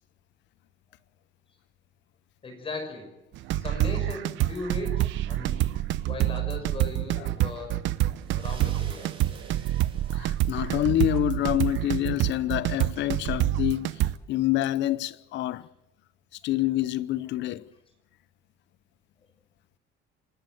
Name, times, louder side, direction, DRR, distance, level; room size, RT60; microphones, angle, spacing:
voice 1, 2.4-5.7 6.1-7.9 8.3-9.2, left 2 dB, 25° left, 5.7 m, -38 dB
sound 1, 3.4-14.1, right 15 dB, 70° right, 0.9 m, -27 dB
sound 2, 8.2-11.2, right 5 dB, 25° right, 3.3 m, -51 dB
voice 2, 10.1-14.0 14.3-15.7 16.4-17.6, left 14 dB, 65° left, 0.9 m, -27 dB
27.0 x 13.0 x 9.1 m
cardioid pair, 165°, 20 cm